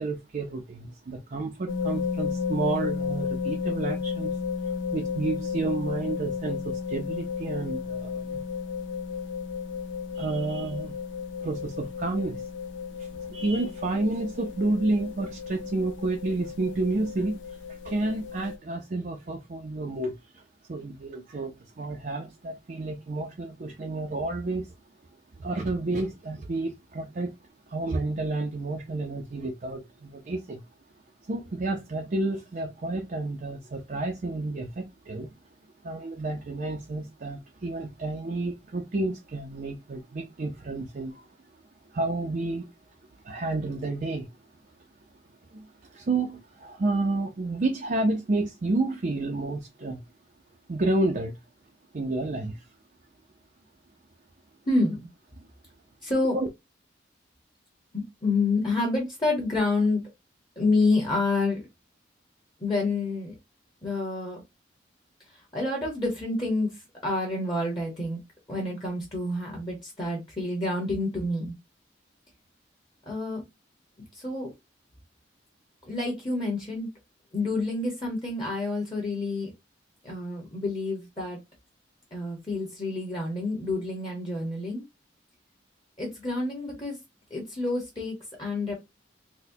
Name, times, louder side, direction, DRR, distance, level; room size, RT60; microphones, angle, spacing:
voice 1, 0.0-4.4 4.6-8.4 10.1-11.0 11.4-12.5 13.0-20.4 20.7-24.7 25.4-27.3 27.7-30.6 31.2-35.3 35.8-41.3 41.9-42.7 43.2-44.3 45.5-50.0 50.7-51.3 51.9-52.7 55.4-55.5 56.3-56.5, right 2 dB, 45° right, 0.5 m, -30 dB
sound 1, 1.7-18.6, left 6 dB, 80° left, 0.4 m, -33 dB
voice 2, 54.7-55.1 56.0-56.4 57.9-60.0 60.6-61.6 62.6-63.3 63.8-64.4 65.3-66.7 67.0-68.2 68.5-71.6 73.1-73.4 74.1-74.5 75.8-76.9 77.3-79.5 80.0-81.4 82.1-84.8 86.0-86.9 87.3-88.7, left 2 dB, 25° left, 1.1 m, -28 dB
4.0 x 2.1 x 2.7 m
head